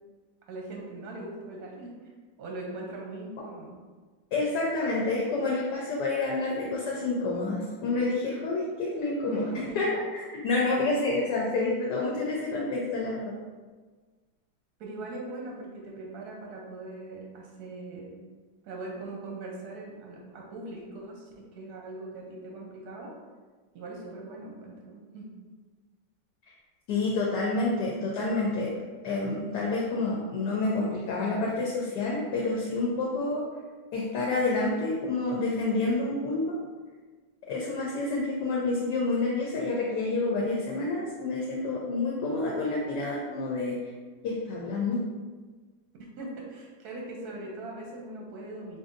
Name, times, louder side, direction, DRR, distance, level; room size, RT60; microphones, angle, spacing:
voice 1, 0.5-1.9 2.4-3.7 9.3-9.8 14.8-18.1 18.6-23.1 23.7-25.3 46.2-48.8, right 2 dB, 70° right, -1 dB, 1.0 m, -40 dB
voice 2, 4.3-13.3 26.9-28.7 29.0-33.5 33.9-36.6 37.5-43.9 44.2-45.1, left 3 dB, 75° left, -3 dB, 1.0 m, -28 dB
4.8 x 2.6 x 2.5 m, 1.4 s
omnidirectional pair, 2.1 m